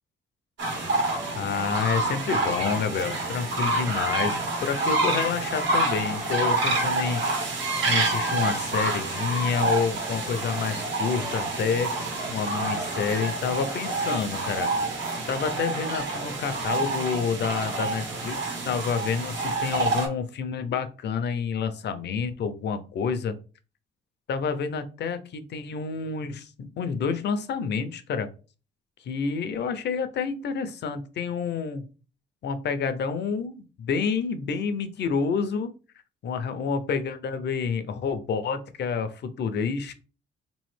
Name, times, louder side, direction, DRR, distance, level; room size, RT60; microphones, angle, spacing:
sound 1, 0.6-20.1, right 2 dB, 70° right, 1.5 m, -28 dB
voice 1, 1.3-7.5 7.9-11.9 12.3-14.7 15.3-23.3 24.3-28.3 29.0-31.9 32.4-35.7 36.2-39.9, left 6 dB, 60° left, 10 dB, 0.6 m, -28 dB
3.8 x 3.1 x 3.2 m, 0.35 s
cardioid pair, 90°, 20 cm